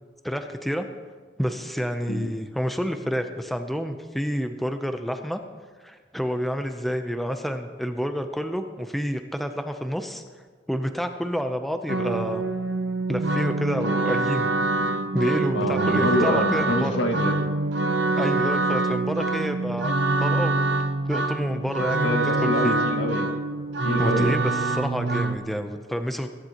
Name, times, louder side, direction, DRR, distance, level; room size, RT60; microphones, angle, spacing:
voice 1, 0.2-0.9 1.4-5.4 5.8-10.2 10.7-12.4 13.1-14.5 15.1-16.9 18.2-19.9 20.2-20.6 21.1-22.8 24.0-26.3, equal, ahead, 6 dB, 0.6 m, -29 dB
sound 1, 11.9-25.4, right 2 dB, 65° right, 0.7 m, -25 dB
voice 2, 15.5-17.5 21.8-23.3 23.8-24.3, left 1 dB, 85° left, 3 dB, 1.7 m, -26 dB
22.0 x 11.0 x 2.9 m, 1.5 s
head